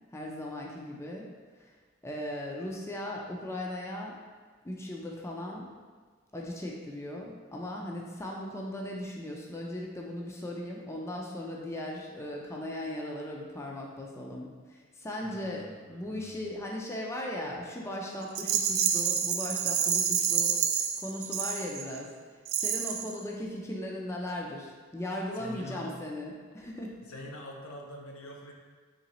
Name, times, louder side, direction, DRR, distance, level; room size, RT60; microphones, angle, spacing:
voice 1, 0.1-1.3 1.6-1.7 2.0-4.1 4.6-5.7 6.3-26.9, left 1 dB, 15° left, -2 dB, 0.4 m, -38 dB
voice 2, 15.2-16.5 25.3-26.0 27.0-28.5, left 1 dB, 85° left, 0 dB, 0.6 m, -45 dB
Rattle, 18.3-22.0 22.5-23.2, right 8 dB, 75° right, 0.3 m, -28 dB
3.8 x 3.1 x 2.9 m, 1.5 s
head